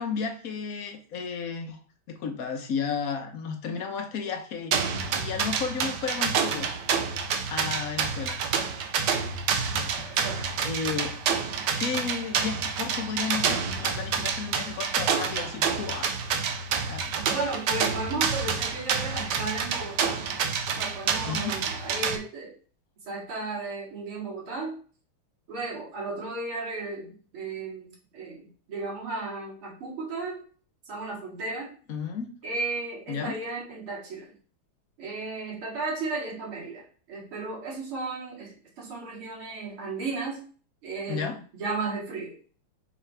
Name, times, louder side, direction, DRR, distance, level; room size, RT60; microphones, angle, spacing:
voice 1, 0.0-1.8 2.1-4.8 5.1-6.7 7.4-8.4 9.7-10.3 10.6-11.1 11.8-16.2 16.6-17.1 21.3-21.5 31.9-32.3 33.1-33.3 41.1-41.4, left 6 dB, 55° left, 5 dB, 1.1 m, -33 dB
sound 1, 4.7-22.2, right 6 dB, 65° right, 1.3 m, -28 dB
voice 2, 9.9-10.5 17.2-20.2 20.7-22.5 23.0-24.8 25.5-30.4 30.9-31.7 32.4-34.3 35.0-40.4 40.8-42.4, right 3 dB, 85° right, -4 dB, 3.1 m, -34 dB
6.3 x 5.0 x 3.4 m, 0.41 s
omnidirectional pair, 2.3 m